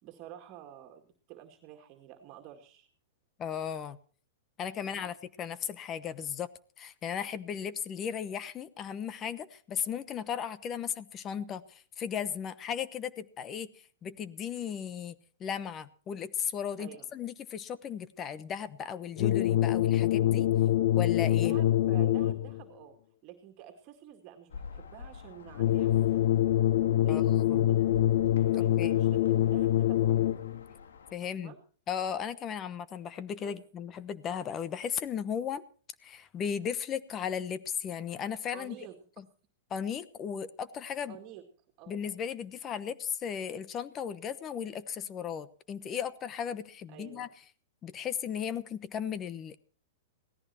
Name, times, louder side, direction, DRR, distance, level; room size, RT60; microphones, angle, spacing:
voice 1, 0.0-2.9 4.8-5.1 16.8-17.1 21.4-23.0 23.2-25.9 27.0-28.0 28.5-30.3 31.2-31.6 33.4-33.6 38.5-39.0 41.1-41.4 41.8-42.2 46.9-47.3, right 11 dB, 40° right, 4 dB, 2.2 m, -49 dB
voice 2, 3.4-4.0 4.6-6.5 6.8-13.7 14.0-15.1 15.4-20.5 21.0-21.6 27.1-27.2 27.5-27.7 28.8-29.0 31.1-31.5 31.9-35.6 36.0-38.7 39.2-39.3 39.7-41.2 41.9-47.3 47.8-49.6, left 8 dB, 25° left, 16 dB, 1.0 m, -36 dB
sound 1, 19.2-22.6 25.6-30.6, left 13 dB, 60° left, 0.7 m, -25 dB
sound 2, 24.5-31.1, left 5 dB, 80° left, 1.8 m, -47 dB
17.5 x 14.0 x 4.5 m, 0.42 s
hypercardioid pair, 125°, 0 cm